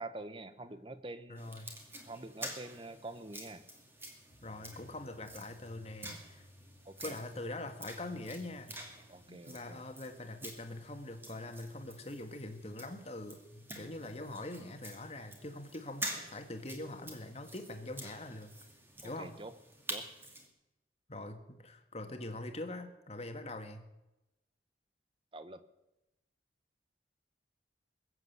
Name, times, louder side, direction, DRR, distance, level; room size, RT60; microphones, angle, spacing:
voice 1, 0.0-1.7 2.1-3.6 6.9-7.2 9.1-9.8 19.0-19.5 19.9-20.1 25.3-25.6, right 2 dB, 30° right, 12 dB, 0.9 m, -46 dB
voice 2, 1.3-1.7 4.4-6.4 7.0-8.7 9.3-18.5 19.0-19.3 21.1-23.8, left 2 dB, 35° left, 6 dB, 1.7 m, -43 dB
sound 1, 1.4-20.5, right 1 dB, 15° right, 2.3 m, -48 dB
sound 2, 4.3-13.1, equal, 75° left, 2.1 m, -62 dB
21.5 x 8.1 x 8.0 m, 0.96 s
head